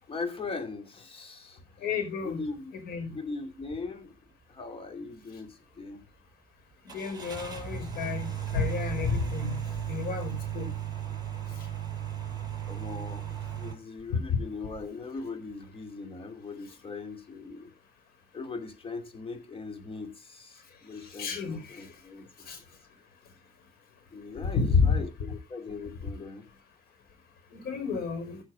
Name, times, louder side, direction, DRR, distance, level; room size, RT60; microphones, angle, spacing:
voice 1, 0.1-1.6 2.2-2.7 3.1-4.2 4.5-6.1 12.7-17.7 18.3-22.2 24.1-26.5, left 4 dB, 35° left, 2.7 m, -40 dB
voice 2, 1.8-2.4 2.7-3.1 6.9-10.7 21.1-21.8 22.5-22.6 24.6-25.0 27.5-28.4, left 5 dB, 65° left, 5.3 m, -30 dB
sound 1, 3.6-3.8 4.3-4.4 6.9-13.7, right 8 dB, 25° right, 6.0 m, -35 dB
15.5 x 6.3 x 4.8 m
cardioid pair, 110°, 17 cm